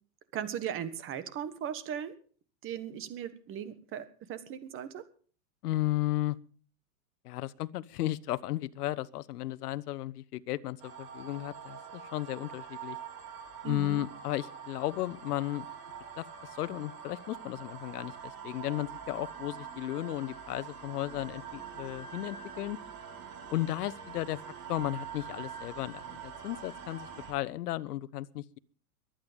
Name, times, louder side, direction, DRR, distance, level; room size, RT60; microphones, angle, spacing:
voice 1, 0.3-2.2 2.6-5.0 13.6-14.0, right 9 dB, 30° right, 13 dB, 1.4 m, -38 dB
voice 2, 5.6-6.4 7.2-13.0 13.6-15.6 16.2-22.8 23.5-24.4 24.7-28.6, left 15 dB, 85° left, 16 dB, 0.9 m, -34 dB
sound 1, 10.8-27.3, right 7 dB, 85° right, 6.9 m, -45 dB
23.0 x 9.0 x 5.1 m, 0.42 s
supercardioid pair, 150°, 45 cm